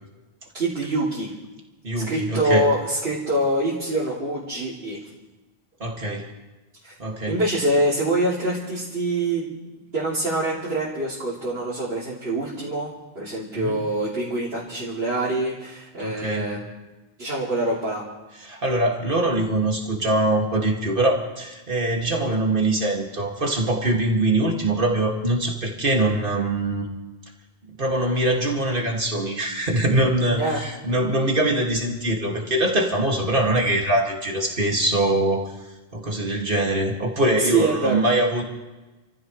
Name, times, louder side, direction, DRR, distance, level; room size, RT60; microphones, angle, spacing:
voice 1, 0.5-1.3 1.9-5.0 6.8-6.9 7.3-9.5 9.9-16.8 17.2-18.0 30.4-30.6 37.4-38.0, right 1 dB, 75° right, -8 dB, 3.4 m, -25 dB
voice 2, 1.8-2.6 5.8-6.3 7.0-7.4 13.5-13.8 16.0-16.5 18.4-26.9 27.8-35.5 35.9-38.4, right 1 dB, 55° right, 0 dB, 2.7 m, -23 dB
28.5 x 15.0 x 3.3 m, 1.1 s
omnidirectional pair, 1.0 m